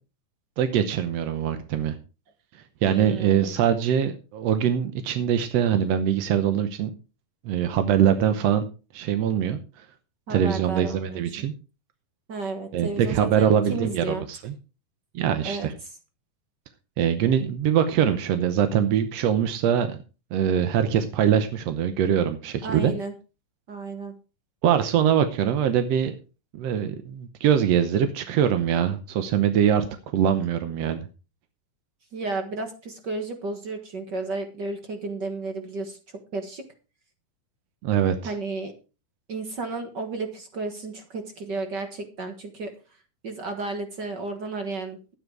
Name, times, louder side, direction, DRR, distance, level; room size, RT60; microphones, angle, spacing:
voice 1, 0.6-1.9 2.8-6.9 7.4-8.7 8.9-9.6 10.3-11.5 12.7-14.5 15.1-15.7 17.0-20.0 20.3-22.9 24.6-26.1 26.5-29.8 30.1-31.0 37.8-38.3, right 9 dB, 75° right, 9 dB, 1.6 m, -23 dB
voice 2, 2.8-3.5 10.3-11.2 12.3-14.2 15.4-15.7 22.6-23.1 23.7-24.1 32.1-36.0 36.3-36.6 38.2-38.7 39.3-42.7 43.2-45.2, right 3 dB, 55° right, 6 dB, 1.2 m, -32 dB
12.0 x 9.4 x 4.7 m, 0.33 s
omnidirectional pair, 4.0 m